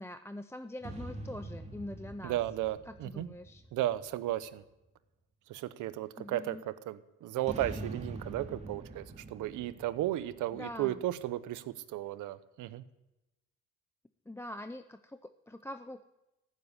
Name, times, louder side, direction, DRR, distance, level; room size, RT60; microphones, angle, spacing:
voice 1, 0.0-2.4 2.9-3.6 6.2-6.6 10.5-11.0 14.3-16.0, left 1 dB, 10° left, 9 dB, 0.6 m, -44 dB
sound 1, 0.8-4.5 7.4-11.2, right 2 dB, 20° right, 2.6 m, -45 dB
voice 2, 2.2-3.3 3.7-4.6 5.5-12.8, right 14 dB, 90° right, 15 dB, 0.8 m, -35 dB
15.0 x 7.5 x 9.8 m, 0.96 s
cardioid pair, 90°, 30 cm